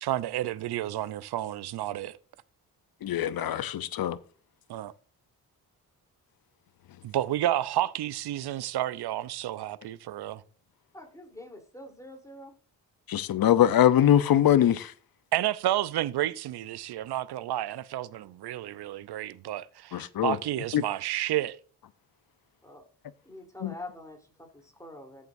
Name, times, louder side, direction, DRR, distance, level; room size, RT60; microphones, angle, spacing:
voice 1, 0.0-2.2 4.7-4.9 7.0-10.4 15.3-21.6, right 13 dB, 65° right, 0.7 m, -31 dB
voice 2, 3.0-4.2 13.1-14.9 19.9-20.4 20.7-20.8 23.6-23.7, left 11 dB, 55° left, 0.7 m, -22 dB
voice 3, 10.9-12.5 22.6-22.8 23.3-25.3, left 1 dB, 10° left, 3.5 m, -45 dB
14.0 x 7.5 x 2.7 m
supercardioid pair, 50°, 42 cm